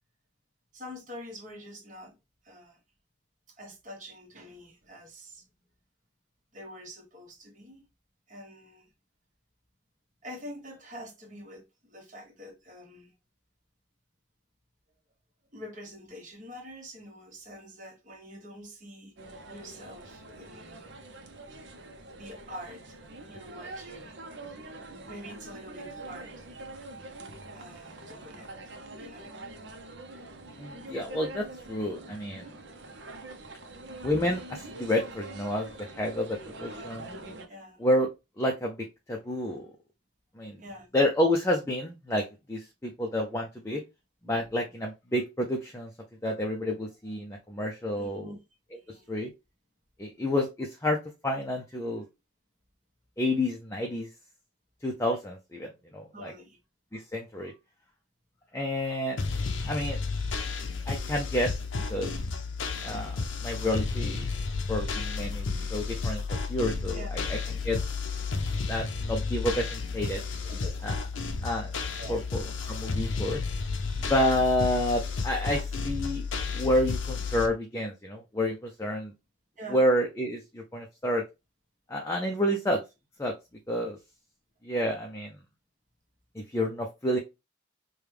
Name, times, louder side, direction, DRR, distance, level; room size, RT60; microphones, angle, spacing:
voice 1, 0.7-2.1 2.4-2.8 3.6-5.5 6.5-7.8 8.3-8.9 10.2-13.1 15.5-19.2 19.5-20.9 22.2-23.0 23.3-24.1 25.1-26.5 27.5-29.3 37.5-37.8 40.6-40.9 44.2-44.5 48.0-48.4 48.7-49.2 56.1-56.6 65.5-65.6 66.9-67.2 70.4-70.9 72.0-72.2 79.6-79.8, equal, 40° right, 1.2 m, -46 dB
sound 1, 19.2-37.5, right 2 dB, 60° right, 0.7 m, -44 dB
voice 2, 30.6-32.5 34.0-37.1 37.8-38.1 38.4-39.7 40.4-40.6 40.9-43.8 44.2-45.9 46.2-48.3 49.1-49.3 50.0-52.0 53.2-54.1 54.8-56.3 56.9-57.5 58.5-59.2 59.7-60.0 60.9-61.5 61.9-62.1 62.8-64.3 64.7-65.5 65.7-66.2 66.5-67.4 67.6-67.8 68.6-70.2 70.8-70.9 71.4-71.7 72.1-73.4 74.0-76.2 76.5-79.1 79.7-81.2 81.9-82.8 83.2-83.3 83.7-84.0 84.6-85.3 86.5-87.2, left 1 dB, 15° left, 0.5 m, -29 dB
sound 2, 59.2-77.5, left 4 dB, 80° left, 0.6 m, -32 dB
5.0 x 2.3 x 3.2 m
head